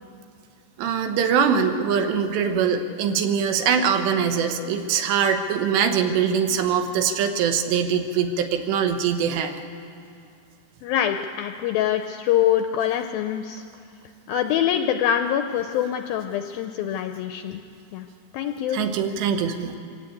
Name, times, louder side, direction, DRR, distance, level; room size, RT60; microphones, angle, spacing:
voice 1, 0.8-9.5 18.7-19.8, right 7 dB, 90° right, 6 dB, 3.4 m, -22 dB
voice 2, 10.8-13.6 14.3-17.6 17.9-18.1 18.3-18.8, left 10 dB, 80° left, 7 dB, 2.1 m, -24 dB
24.0 x 17.0 x 8.5 m, 2.4 s
omnidirectional pair, 4.8 m